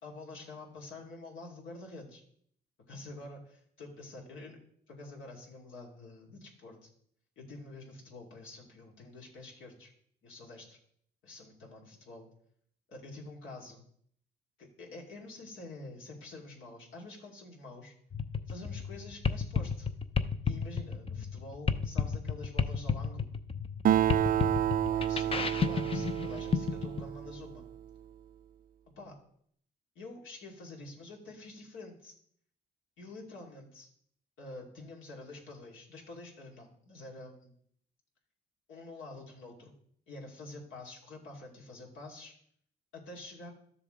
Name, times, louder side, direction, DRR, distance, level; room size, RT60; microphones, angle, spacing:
voice 1, 0.0-2.2 2.9-4.6 4.9-6.9 7.4-9.9 10.2-10.8 11.2-12.3 13.0-13.8 14.6-18.0 18.5-19.9 20.4-23.3 24.9-27.6 29.0-29.2 29.9-32.1 33.0-33.9 34.4-37.5 38.7-39.7 40.1-42.4 42.9-43.5, left 2 dB, 80° left, -1 dB, 2.6 m, -47 dB
sound 1, 18.1-27.0, left 6 dB, 30° left, 0.7 m, -32 dB
Acoustic guitar, 23.9-27.7, right 10 dB, 45° right, 0.4 m, -29 dB
12.5 x 6.9 x 3.8 m, 0.64 s
cardioid pair, 90°, 20 cm